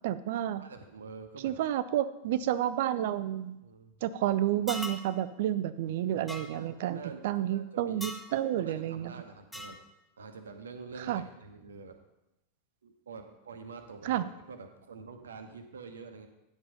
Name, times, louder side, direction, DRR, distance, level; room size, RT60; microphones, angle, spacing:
voice 1, 0.0-0.6 1.4-3.6 4.0-9.1 11.1-11.2 14.0-14.2, right 12 dB, 50° right, 15 dB, 0.5 m, -30 dB
voice 2, 0.6-1.6 2.2-2.4 3.6-4.0 6.5-9.8 10.2-12.0 12.8-16.3, right 5 dB, 70° right, 6 dB, 1.0 m, -47 dB
sound 1, 4.7-5.1 6.3-6.5 8.0-8.3 9.5-9.8, equal, ahead, 0.8 m, -39 dB
9.2 x 5.4 x 5.4 m, 0.93 s
figure-of-eight pair, 90°, 0 cm